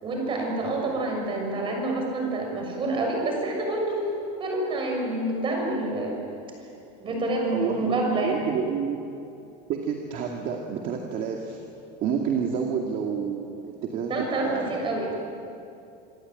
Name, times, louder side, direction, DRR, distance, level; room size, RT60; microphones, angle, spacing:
voice 1, 0.0-6.2 7.0-8.4 14.1-15.1, right 2 dB, 25° right, 1 dB, 6.5 m, -27 dB
voice 2, 7.5-9.0 9.7-11.6 12.0-14.8, right 6 dB, 40° right, 1 dB, 2.3 m, -29 dB
27.5 x 22.0 x 9.2 m, 2.7 s
cardioid pair, 170°, 20 cm